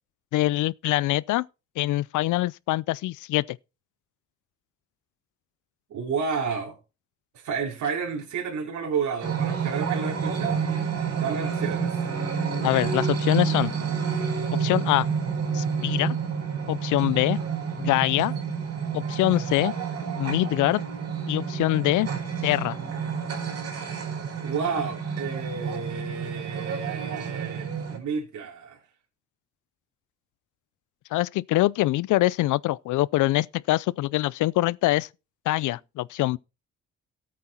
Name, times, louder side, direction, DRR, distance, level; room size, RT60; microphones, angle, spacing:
voice 1, 0.3-1.5 1.8-3.6 12.6-13.7 14.5-15.1 15.5-16.2 16.7-17.4 17.8-18.3 18.9-19.7 20.2-20.8 21.3-22.1 22.4-22.8 31.1-35.1 35.5-36.4, left 17 dB, 85° left, 0.5 m, -24 dB
voice 2, 5.9-6.8 7.3-10.7 11.1-11.9 24.4-28.8, right 5 dB, 70° right, 3.9 m, -31 dB
sound 1, 9.2-28.0, right 6 dB, 55° right, 4.3 m, -29 dB
14.0 x 8.6 x 4.4 m
cardioid pair, 90°, 30 cm